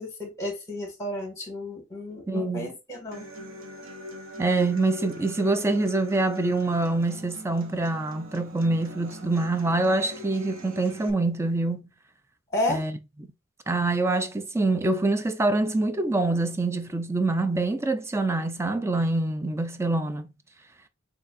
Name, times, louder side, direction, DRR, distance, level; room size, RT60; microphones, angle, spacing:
voice 1, 0.0-3.3 12.5-12.8, left 1 dB, 15° left, 1.9 m, -32 dB
voice 2, 2.3-2.7 4.4-11.8 12.7-13.0 13.7-20.3, right 2 dB, 10° right, 0.3 m, -25 dB
Human voice / Acoustic guitar, 3.1-11.1, right 1 dB, 65° right, 0.9 m, -42 dB
6.5 x 2.8 x 2.5 m
head